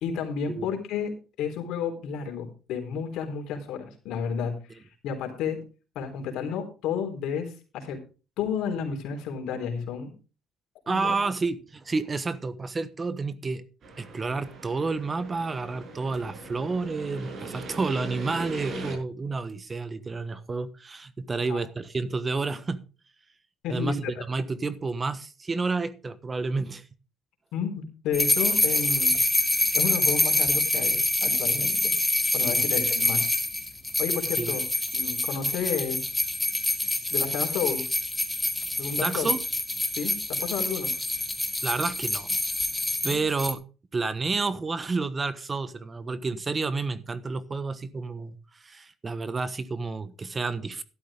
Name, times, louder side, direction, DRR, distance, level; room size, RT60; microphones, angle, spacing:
voice 1, 0.0-1.1 1.4-5.6 5.9-8.0 8.4-10.1 10.9-11.2 21.5-21.6 23.6-24.0 27.5-29.2 29.7-31.9 32.3-33.3 34.0-34.6 34.9-36.1 37.1-37.9 38.8-39.3 40.0-40.9 43.0-43.2, left 7 dB, 75° left, 4.0 m, -31 dB
voice 2, 10.9-13.6 14.0-22.8 23.7-26.8 32.5-32.7 34.3-34.5 39.0-39.4 41.6-42.4 43.0-43.7 43.9-50.8, right 4 dB, 25° right, 1.2 m, -30 dB
sound 1, 13.8-19.0, right 2 dB, 55° right, 6.8 m, -40 dB
sound 2, 28.1-43.5, left 2 dB, 10° left, 2.4 m, -26 dB
12.5 x 12.0 x 3.7 m
cardioid pair, 95°, 0 cm